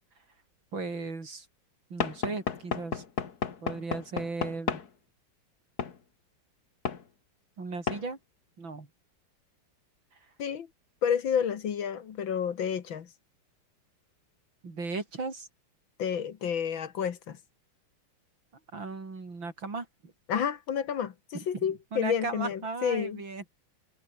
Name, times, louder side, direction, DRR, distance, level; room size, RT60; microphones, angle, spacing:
voice 1, 0.7-1.5 1.9-3.0 3.6-4.8 7.6-8.2 8.6-8.9 14.6-15.5 18.7-20.1 21.3-23.4, right 3 dB, 60° right, 5.1 m, -36 dB
Knock / Wood, 2.0-4.9 5.8-6.0 6.9-7.0 7.9-8.1, left 6 dB, 50° left, 2.2 m, -32 dB
voice 2, 11.0-13.1 16.0-17.4 20.3-23.2, left 8 dB, 65° left, 2.2 m, -30 dB
omnidirectional pair, 2.3 m